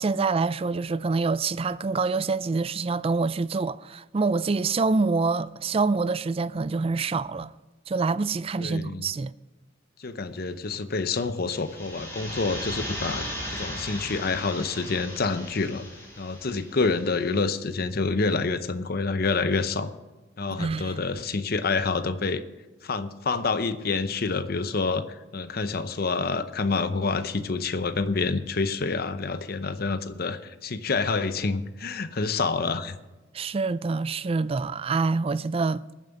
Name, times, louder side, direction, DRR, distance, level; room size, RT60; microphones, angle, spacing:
voice 1, 0.0-7.5 7.9-9.3 20.5-21.0 33.3-35.8, right 4 dB, 30° right, 0.4 m, -26 dB
voice 2, 8.6-9.1 10.0-15.8 16.2-19.9 20.4-22.4 22.8-25.1 25.3-33.0, left 4 dB, 50° left, 0.7 m, -27 dB
sound 1, 11.5-17.1, left 1 dB, 15° left, 4.3 m, -37 dB
20.0 x 7.4 x 5.3 m
head